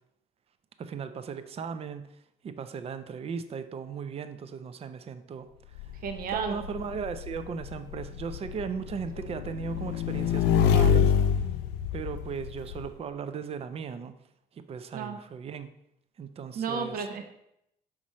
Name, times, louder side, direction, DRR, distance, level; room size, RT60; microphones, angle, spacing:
voice 1, 0.8-5.9 6.3-11.3 11.9-14.1 14.5-15.7 16.2-17.0, right 6 dB, 35° right, 10 dB, 0.5 m, -37 dB
Motorcycle / Engine, 5.8-12.9, left 8 dB, 85° left, 0.5 m, -27 dB
voice 2, 6.0-6.6 14.9-15.2 16.5-17.3, right 6 dB, 60° right, 5 dB, 0.9 m, -32 dB
5.9 x 5.0 x 4.2 m, 0.78 s
cardioid pair, 110°, 17 cm